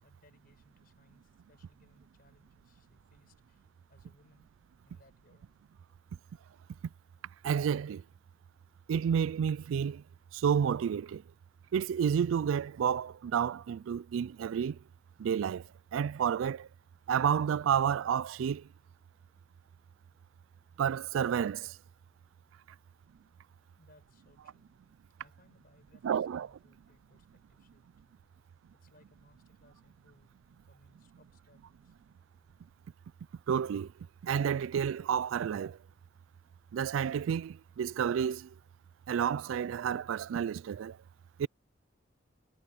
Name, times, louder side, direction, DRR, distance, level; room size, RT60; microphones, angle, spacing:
voice 1, 0.0-4.5 4.8-5.5 23.7-24.7 25.2-27.9 28.8-30.3 30.6-32.0, left 1 dB, 50° left, 4.7 m, -66 dB
voice 2, 7.4-8.0 8.9-10.0 10.4-11.2 11.7-14.8 15.2-15.6 15.9-16.7 17.1-18.6 20.8-21.7 26.0-26.5 33.5-33.9 34.2-35.8 36.7-38.5 39.1-40.9 41.4-41.5, right 8 dB, 90° right, 0.3 m, -30 dB
head